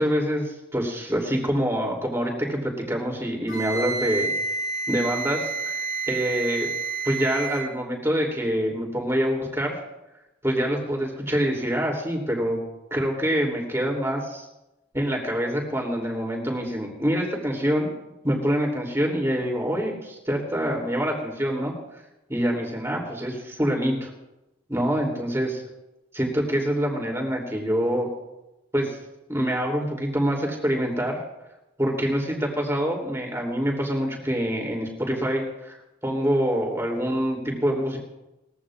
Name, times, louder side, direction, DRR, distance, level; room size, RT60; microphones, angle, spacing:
voice 1, 0.0-4.3 4.9-6.7 7.0-9.8 10.4-12.6 12.9-14.5 14.9-17.9 18.2-21.7 22.3-24.1 24.7-25.6 26.1-28.1 28.7-29.0 29.3-31.2 31.8-35.8 36.0-38.0, equal, 15° right, -1 dB, 3.0 m, -25 dB
Wind instrument woodwind instrument, 3.5-7.7, right 4 dB, 85° left, 4.6 m, -29 dB
21.5 x 15.0 x 2.5 m, 0.96 s
head